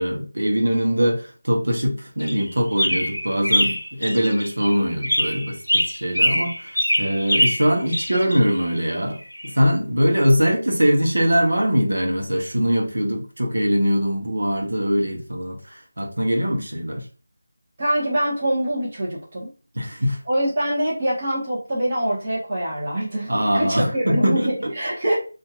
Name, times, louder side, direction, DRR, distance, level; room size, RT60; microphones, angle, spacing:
voice 1, 0.0-9.2 9.4-17.1 19.7-20.2 23.3-24.7, equal, 60° right, 1 dB, 0.9 m, -22 dB
sound 1, 2.2-4.7 5.0-8.6 9.3-9.5, equal, 80° left, 0.6 m, -23 dB
voice 2, 17.8-19.5 20.3-25.2, right 1 dB, 25° right, -8 dB, 1.0 m, -24 dB
2.8 x 2.5 x 2.4 m, 0.37 s
figure-of-eight pair, 165°, 0 cm